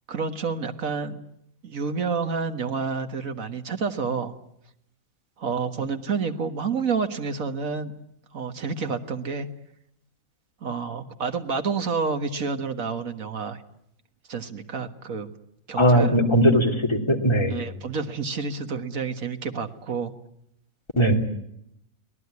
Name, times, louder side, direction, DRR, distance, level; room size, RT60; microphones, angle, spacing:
voice 1, 0.1-1.2 1.6-4.4 5.4-7.9 8.3-9.5 10.6-13.6 14.3-15.3 15.7-16.1 17.5-20.1, right 5 dB, 70° right, 7 dB, 1.9 m, -29 dB
voice 2, 15.8-17.6 21.0-21.1, equal, 20° left, 2 dB, 3.0 m, -19 dB
24.0 x 18.5 x 9.7 m, 0.77 s
omnidirectional pair, 1.5 m